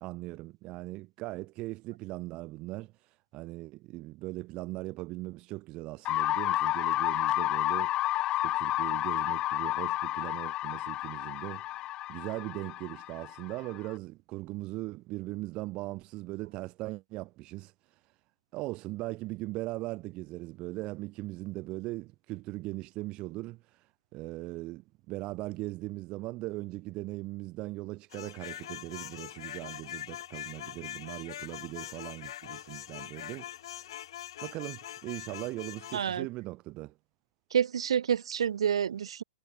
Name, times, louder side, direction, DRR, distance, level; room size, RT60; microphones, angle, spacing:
voice 1, 0.0-18.1 18.5-33.9 34.4-36.9, right 20 dB, 30° right, 1.1 m, -39 dB
sound 1, 6.0-13.9, left 15 dB, 25° left, 0.4 m, -31 dB
sound 2, 28.1-36.1, left 12 dB, 50° left, 6.1 m, -43 dB
voice 2, 35.9-36.3 37.5-39.2, right 8 dB, 65° right, 0.4 m, -28 dB
figure-of-eight pair, 110°, 3 cm